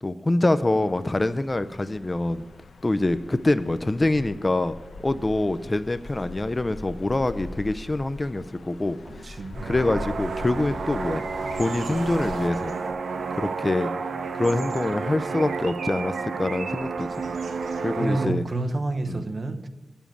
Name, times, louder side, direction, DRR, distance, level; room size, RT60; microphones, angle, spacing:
voice 1, 0.0-2.5 2.8-4.7 5.0-9.0 9.6-11.2 11.5-12.7 13.4-13.9 14.3-17.1 17.8-18.5 19.1-19.2, left 2 dB, 25° left, 0.4 m, -25 dB
sound 1, 0.8-12.5, left 3 dB, 70° left, 0.9 m, -41 dB
sound 2, 5.3-6.8 7.8-8.6 8.9-9.7 10.3-11.0 12.0-13.0 13.5-13.6, right 1 dB, 15° right, 1.8 m, -50 dB
voice 2, 9.2-9.7 18.0-19.7, right 2 dB, 40° right, 0.8 m, -29 dB
sound 3, 9.5-18.3, right 4 dB, 80° right, 0.7 m, -31 dB
9.6 x 7.2 x 8.9 m
wide cardioid pair, 105°, 0 cm